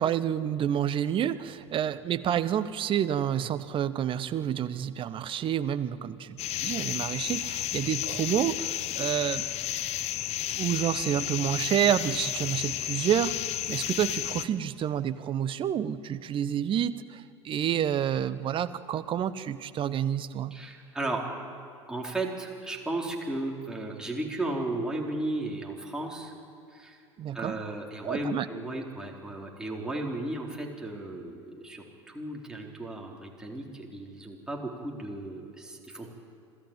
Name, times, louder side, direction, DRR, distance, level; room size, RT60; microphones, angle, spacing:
voice 1, 0.0-9.5 10.5-13.3 13.7-20.5 27.2-27.6 28.0-28.5, right 10 dB, 35° right, 14 dB, 0.9 m, -29 dB
sound 1, 6.4-14.4, left 13 dB, 40° left, 1.0 m, -32 dB
voice 2, 20.5-21.2 21.9-26.3 26.7-27.0 27.3-36.1, right 2 dB, 5° right, -2 dB, 4.2 m, -35 dB
26.0 x 15.5 x 9.1 m, 2.5 s
figure-of-eight pair, 80°, 16 cm